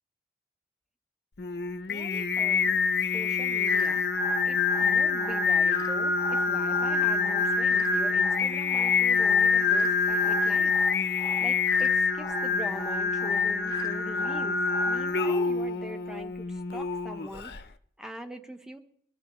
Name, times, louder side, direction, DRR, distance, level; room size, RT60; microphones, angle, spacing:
Singing, 1.4-17.6, left 5 dB, 60° left, 0.7 m, -26 dB
voice 1, 1.9-2.7 3.1-4.1 4.4-10.7 11.4-14.6 14.9-17.5 18.0-18.8, equal, 5° right, 5 dB, 0.9 m, -43 dB
sound 1, 3.7-15.7, left 2 dB, 20° left, 0.6 m, -41 dB
23.0 x 12.5 x 3.1 m, 0.64 s
head